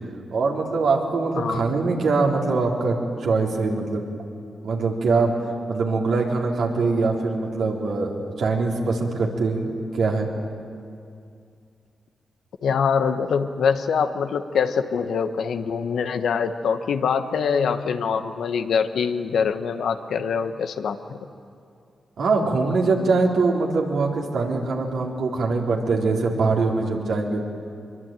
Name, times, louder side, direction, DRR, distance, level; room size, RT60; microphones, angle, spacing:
voice 1, 0.3-4.0 4.6-5.3 5.7-10.3 22.2-27.5, right 3 dB, 80° right, -1 dB, 3.9 m, -23 dB
voice 2, 1.3-1.7 12.6-21.2, left 6 dB, 80° left, 8 dB, 1.3 m, -24 dB
23.5 x 23.0 x 9.1 m, 2.4 s
supercardioid pair, 50°, 0 cm